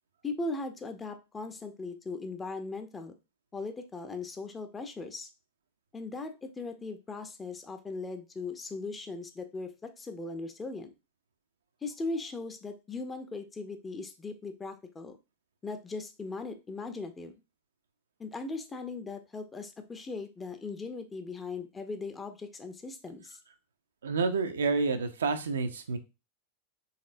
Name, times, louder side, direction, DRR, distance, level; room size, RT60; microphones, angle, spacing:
voice 1, 0.2-3.1 3.5-5.3 5.9-9.7 10.0-10.9 11.8-15.2 15.6-17.4 18.2-23.4, left 3 dB, 15° left, 7 dB, 0.5 m, -38 dB
voice 2, 24.0-26.0, right 4 dB, 65° right, 8 dB, 0.5 m, -29 dB
4.1 x 3.3 x 2.5 m, 0.28 s
figure-of-eight pair, 90°, 0 cm